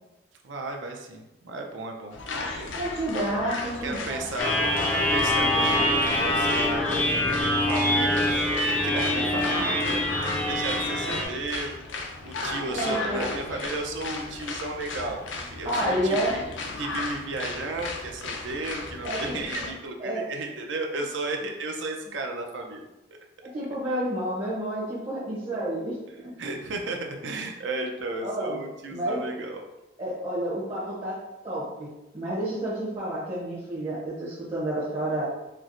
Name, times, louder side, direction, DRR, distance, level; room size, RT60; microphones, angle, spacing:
voice 1, 0.4-2.8 3.8-4.7 5.0-5.9 6.2-6.9 7.6-11.8 12.2-16.4 16.8-22.8 26.4-29.7, right 2 dB, 70° right, 2 dB, 0.5 m, -34 dB
sound 1, 2.1-19.7, left 3 dB, 70° left, 0.4 m, -35 dB
voice 2, 2.7-4.3 8.9-9.0 12.7-13.3 15.6-16.3 19.0-19.4 20.0-20.2 23.4-26.3 28.2-28.6 28.9-29.2 30.0-31.2 31.4-35.2, right 1 dB, 30° right, -9 dB, 0.7 m, -30 dB
sound 2, 4.4-11.2, left 1 dB, 10° left, 0.4 m, -24 dB
4.4 x 2.0 x 2.5 m, 0.95 s
head